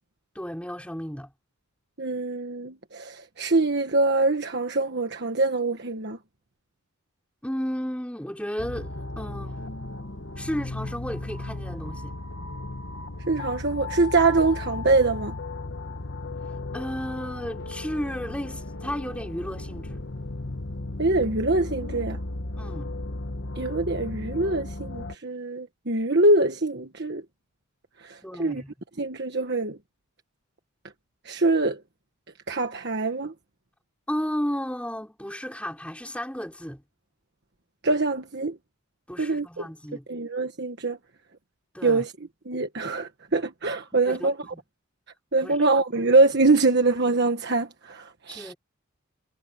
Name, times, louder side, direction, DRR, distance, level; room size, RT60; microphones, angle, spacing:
voice 1, 0.4-1.3 7.4-9.7 10.4-12.2 16.7-20.0 22.6-22.9 28.2-28.7 34.1-36.8 39.1-40.1 41.7-42.1 43.9-44.6 45.4-45.7 48.3-48.6, equal, 5° left, 5.3 m, -33 dB
voice 2, 2.0-6.2 13.3-15.4 21.0-22.2 23.6-27.2 28.0-28.6 29.0-29.8 31.2-31.8 32.5-33.3 37.8-38.5 39.2-39.7 40.1-41.0 41.8-42.1 42.5-44.3 45.3-48.5, right 3 dB, 50° right, 1.4 m, -24 dB
sound 1, 8.6-25.1, left 2 dB, 55° left, 1.4 m, -35 dB
head